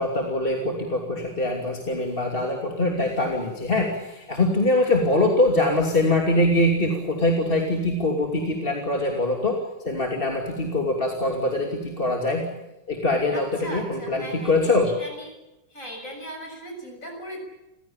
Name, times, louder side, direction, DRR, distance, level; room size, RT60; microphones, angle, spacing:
voice 1, 0.0-12.5 12.9-14.9, left 2 dB, 30° left, 1 dB, 3.0 m, -23 dB
voice 2, 13.3-15.3 15.7-17.4, equal, 45° left, 2 dB, 7.4 m, -38 dB
30.0 x 16.5 x 8.8 m, 0.99 s
omnidirectional pair, 1.9 m